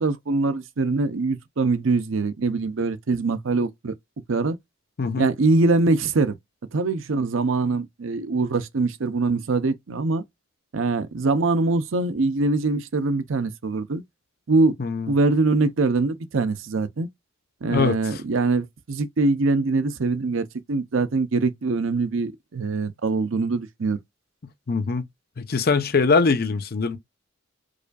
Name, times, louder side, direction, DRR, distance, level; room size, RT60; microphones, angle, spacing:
voice 1, 0.0-3.9 4.3-4.6 5.2-6.4 6.7-10.2 10.7-14.0 14.5-14.8 15.1-17.1 17.6-24.0, right 3 dB, 70° right, 0.6 m, -23 dB
voice 2, 14.8-15.1 17.7-18.2 24.7-25.0 25.4-27.0, left 4 dB, 50° left, 0.6 m, -22 dB
4.9 x 2.5 x 2.2 m
head